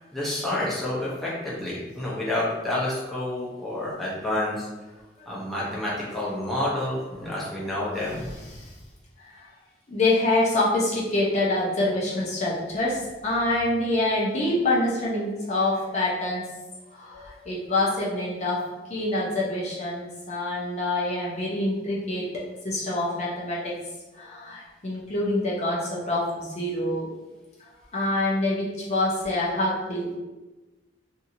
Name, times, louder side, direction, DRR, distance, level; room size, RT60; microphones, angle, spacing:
voice 1, 0.1-4.7 5.3-8.2, left 1 dB, ahead, -8 dB, 0.7 m, -29 dB
voice 2, 9.9-16.4 16.9-18.6 18.9-23.7 24.1-27.1 27.9-30.1, left 2 dB, 40° left, -6 dB, 0.6 m, -26 dB
2.7 x 2.6 x 2.6 m, 1.1 s
head